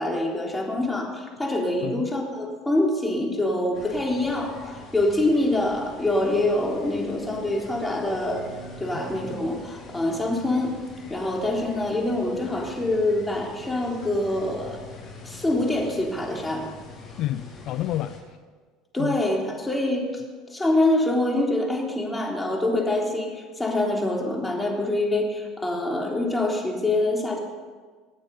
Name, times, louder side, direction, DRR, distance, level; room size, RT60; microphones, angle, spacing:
voice 1, 0.0-8.5 8.8-10.7 11.1-14.8 15.3-16.7 18.9-20.1 20.5-27.4, left 1 dB, 10° left, -1 dB, 3.7 m, -25 dB
sound 1, 3.7-18.2, left 2 dB, 35° left, 5.3 m, -43 dB
voice 2, 17.2-18.2 19.0-19.2, left 13 dB, 60° left, 10 dB, 0.6 m, -29 dB
24.0 x 9.0 x 5.5 m, 1.5 s
supercardioid pair, 100°, 0 cm